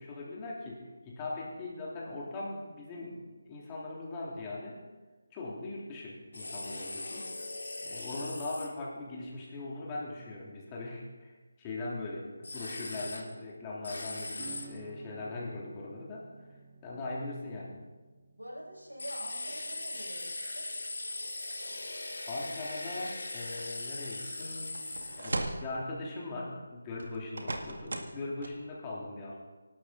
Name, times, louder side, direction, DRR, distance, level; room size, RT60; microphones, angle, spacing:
voice 1, 0.0-4.8 5.3-7.3 7.8-16.2 16.8-17.8 22.3-24.8 25.1-29.4, left 2 dB, 15° left, -4 dB, 3.6 m, -40 dB
sound 1, 6.3-8.7 12.4-13.2 13.8-14.7 19.0-25.3, left 2 dB, 65° left, 2.5 m, -40 dB
Acoustic guitar / Strum, 14.3-20.6, right 4 dB, 30° right, 2.0 m, -53 dB
voice 2, 18.4-20.7, equal, 85° right, -2 dB, 6.0 m, -46 dB
sound 2, 24.1-24.3 24.8-25.7 27.0-28.2 28.4-28.5, right 2 dB, 60° right, 2.0 m, -37 dB
24.5 x 12.0 x 4.1 m, 1.3 s
figure-of-eight pair, 155°, 0 cm